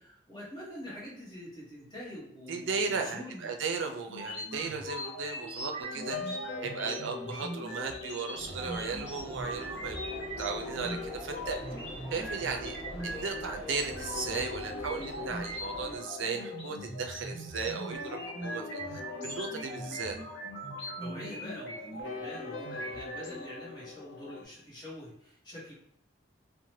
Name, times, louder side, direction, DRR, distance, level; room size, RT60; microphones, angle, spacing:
voice 1, 0.0-3.5 21.0-25.7, left 1 dB, 20° left, -5 dB, 1.0 m, -45 dB
voice 2, 2.5-11.6 12.1-20.2, right 5 dB, 80° right, 4 dB, 0.4 m, -36 dB
sound 1, 4.1-23.3, right 1 dB, 60° left, 1.0 m, -41 dB
sound 2, 5.6-24.4, left 5 dB, 75° left, 0.4 m, -44 dB
sound 3, 8.3-16.0, right 1 dB, 35° right, 1.2 m, -45 dB
2.7 x 2.1 x 3.0 m, 0.74 s
head